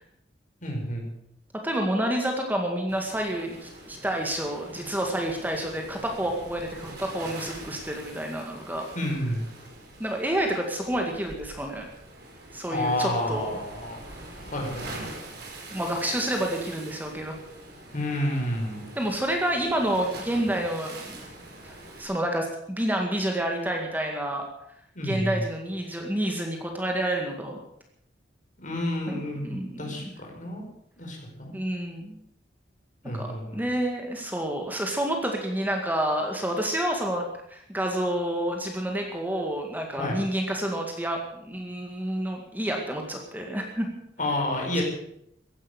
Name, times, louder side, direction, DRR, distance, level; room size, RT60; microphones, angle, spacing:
voice 1, 0.6-1.1 9.0-9.4 12.7-14.0 14.4-14.9 17.9-18.8 25.0-25.4 28.6-30.7 31.0-31.5 33.0-33.6 40.0-40.2 44.2-44.8, left 1 dB, 45° left, 1 dB, 5.3 m, -30 dB
voice 2, 1.6-8.9 10.0-11.9 12.5-13.5 15.7-17.4 19.0-21.2 21.6-24.5 25.0-27.6 29.1-30.1 31.5-32.2 33.1-33.3 33.5-43.9, right 1 dB, 10° right, 2 dB, 2.0 m, -29 dB
Waves surf, 2.9-22.0, right 1 dB, 60° right, 5.1 m, -43 dB
15.5 x 11.0 x 8.2 m, 0.74 s
head